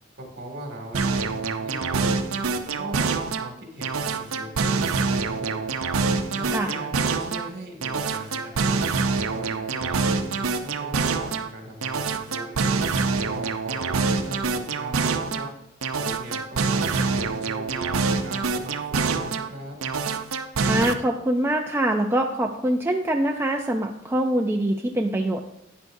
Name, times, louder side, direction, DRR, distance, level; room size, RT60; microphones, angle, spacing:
voice 1, 0.2-2.3 2.6-5.7 6.3-8.8 9.2-12.6 13.2-15.5 16.0-19.8, right 1 dB, 50° right, 1 dB, 2.3 m, -39 dB
sound 1, 0.9-3.5 3.8-7.5 7.8-11.5 11.8-15.5 15.8-19.5 19.8-20.9, right 4 dB, 80° right, 0.7 m, -25 dB
voice 2, 20.6-25.4, right 1 dB, 10° right, 2 dB, 0.5 m, -24 dB
11.0 x 9.6 x 2.7 m, 0.79 s
head